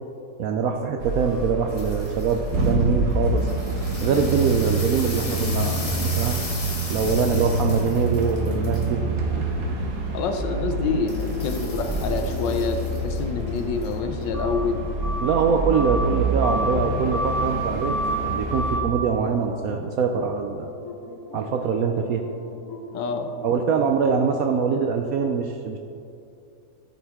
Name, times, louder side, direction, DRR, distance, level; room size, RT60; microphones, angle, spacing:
voice 1, 0.4-3.5 4.0-6.4 6.9-9.0 15.2-18.0 18.2-20.7 21.3-22.3 23.4-25.8, right 6 dB, 75° right, 4 dB, 0.8 m, -23 dB
sound 1, 1.0-18.8, right 2 dB, 55° right, 1.4 m, -27 dB
sound 2, 1.7-2.7 3.2-8.9 11.1-13.9 14.2-14.3, left 3 dB, 35° left, 0.5 m, -37 dB
voice 2, 10.1-14.9 22.9-23.3, left 4 dB, 85° left, 6 dB, 1.4 m, -27 dB
sound 3, 10.5-24.7, left 5 dB, 55° left, 1.1 m, -37 dB
13.0 x 6.0 x 3.6 m, 2.5 s
omnidirectional pair, 1.9 m